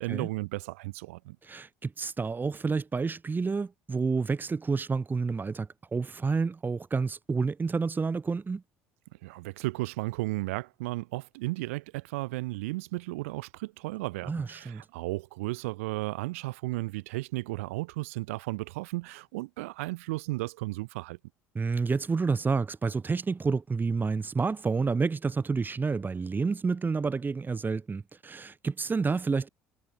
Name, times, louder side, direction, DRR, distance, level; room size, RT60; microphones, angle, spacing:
voice 1, 0.0-1.4 9.2-21.2, right 21 dB, 70° right, 3.7 m, -34 dB
voice 2, 1.4-8.6 14.3-14.8 21.5-29.5, right 4 dB, 25° right, 3.0 m, -29 dB
figure-of-eight pair, 60°, 7 cm